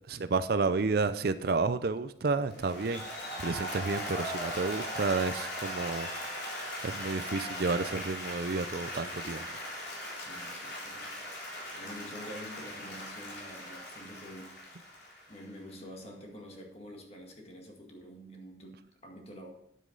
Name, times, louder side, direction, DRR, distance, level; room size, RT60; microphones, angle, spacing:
voice 1, 0.1-6.1 6.8-9.5, right 4 dB, 55° right, 12 dB, 0.5 m, -31 dB
Applause, 2.5-15.7, left 1 dB, 65° left, 3.9 m, -39 dB
voice 2, 10.2-14.6 15.3-19.5, equal, 35° left, 1 dB, 1.9 m, -47 dB
9.6 x 8.2 x 3.9 m, 0.79 s
head